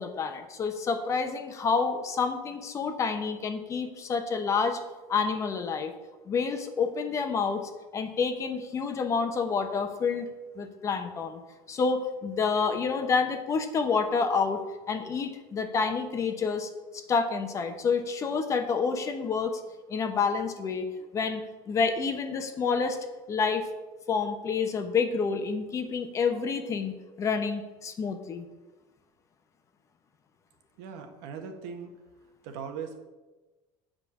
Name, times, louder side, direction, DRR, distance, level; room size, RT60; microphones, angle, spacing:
voice 1, 0.0-4.8 5.1-5.9 6.3-10.3 10.6-11.4 11.7-19.6 19.9-20.9 21.1-23.0 23.3-23.7 24.1-28.4, left 5 dB, 30° left, 7 dB, 0.9 m, -28 dB
voice 2, 30.8-31.9 32.4-33.0, right 6 dB, 70° right, 5 dB, 1.5 m, -39 dB
8.5 x 5.3 x 7.2 m, 1.2 s
cardioid pair, 140°, 11 cm